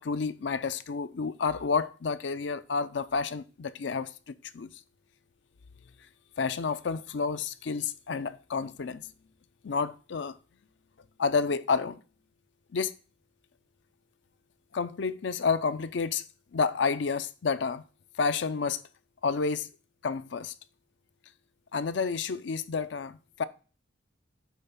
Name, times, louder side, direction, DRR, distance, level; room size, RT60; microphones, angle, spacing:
voice 1, 0.0-4.8 6.4-9.1 9.6-10.4 11.2-12.0 12.7-12.9 14.7-16.2 16.5-17.8 18.2-18.8 19.2-19.7 20.0-20.5 21.7-23.4, left 5 dB, 65° left, 0.5 m, -30 dB
8.2 x 3.4 x 5.6 m
head